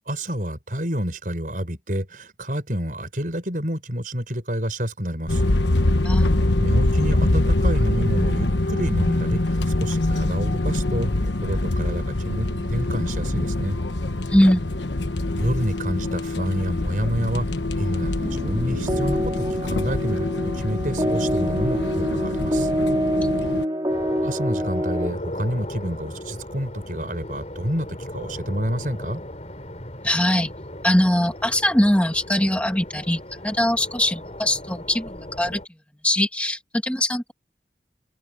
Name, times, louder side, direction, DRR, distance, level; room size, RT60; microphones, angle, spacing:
voice 1, 0.1-5.4 5.9-6.1 6.6-13.8 15.3-17.5 17.7-22.7 24.2-29.2, equal, 50° right, 6.2 m, -28 dB
sound 1, 5.3-23.6, left 2 dB, 90° left, 1.3 m, -24 dB
voice 2, 6.0-6.6 14.3-14.7 30.0-30.5 30.8-35.6 36.0-37.3, left 1 dB, 10° left, 2.0 m, -22 dB
sound 2, 18.2-25.1, equal, 25° right, 2.5 m, -26 dB
sound 3, 23.9-35.6, left 1 dB, 40° left, 4.1 m, -37 dB
head